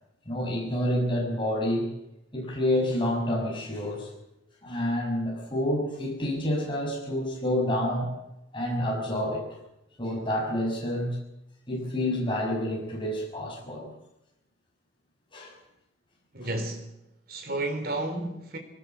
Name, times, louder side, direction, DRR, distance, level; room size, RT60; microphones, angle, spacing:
voice 1, 0.3-1.9 2.3-4.1 4.6-8.1 8.5-9.4 10.0-11.2 11.7-13.9 15.3-15.5, left 1 dB, 25° left, 6.3 m, -28 dB
voice 2, 16.3-16.9 17.3-18.6, right 2 dB, 55° right, 3.8 m, -32 dB
21.0 x 18.0 x 7.2 m
head